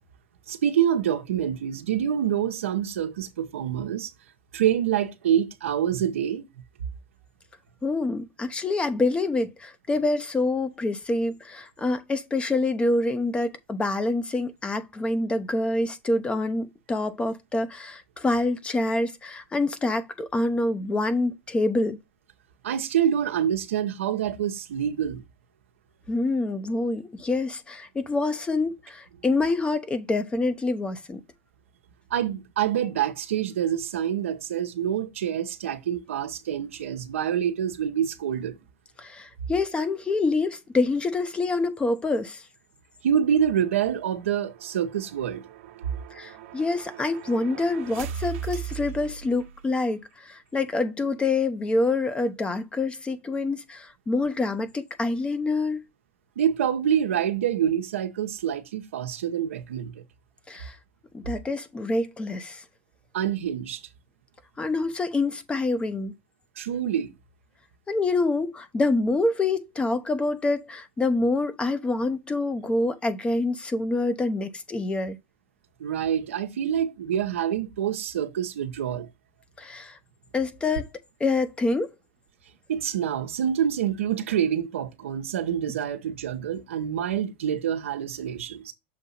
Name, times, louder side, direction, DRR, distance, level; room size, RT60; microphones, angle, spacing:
voice 1, 0.5-4.1 4.5-6.5 22.6-25.2 32.1-38.6 43.0-45.4 56.4-60.0 63.1-63.8 66.6-67.1 75.8-79.1 82.7-88.7, right 9 dB, 90° right, 0.9 m, -26 dB
voice 2, 7.8-22.0 26.1-31.2 39.0-42.4 46.1-55.9 60.5-60.8 61.1-62.6 64.6-66.1 67.9-75.2 79.6-80.0 80.3-80.9 81.2-81.9, left 2 dB, 15° left, 0.8 m, -26 dB
sound 1, 43.1-49.9, right 9 dB, 70° right, 1.1 m, -40 dB
6.8 x 2.7 x 5.5 m
supercardioid pair, 115°, 7 cm